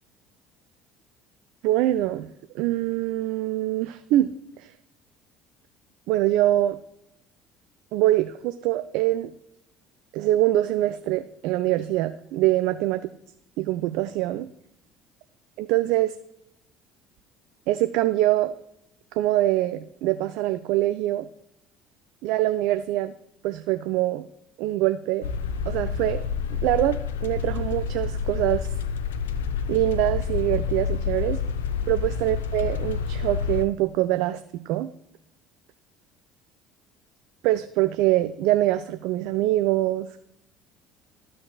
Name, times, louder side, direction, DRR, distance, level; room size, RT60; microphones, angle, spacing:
voice 1, 1.6-2.3 2.5-4.3 4.6-4.7 6.1-6.8 7.9-9.3 10.1-13.0 13.6-14.5 15.6-16.1 17.7-18.5 19.1-21.3 22.2-23.1 23.4-24.3 24.6-25.3 25.7-26.2 26.5-28.7 29.7-31.4 31.9-34.4 34.7-34.9 37.4-40.1, right 15 dB, 65° right, 9 dB, 0.3 m, -24 dB
sound 1, 25.2-33.7, left 7 dB, 75° left, 0.4 m, -28 dB
13.0 x 6.4 x 2.3 m, 0.81 s
figure-of-eight pair, 60°, 0 cm